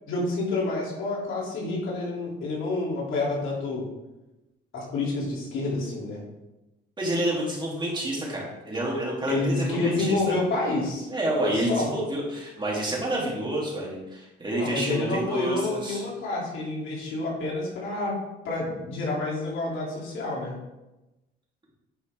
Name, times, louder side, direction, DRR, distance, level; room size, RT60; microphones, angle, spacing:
voice 1, 0.1-3.8 4.7-6.2 9.3-11.1 11.4-11.9 14.6-18.2 18.4-20.6, left 2 dB, 85° left, -4 dB, 3.0 m, -28 dB
voice 2, 7.0-10.4 11.1-16.1, right 1 dB, 25° right, -4 dB, 2.9 m, -28 dB
9.9 x 5.6 x 3.6 m, 1.0 s
cardioid pair, 90°, 20 cm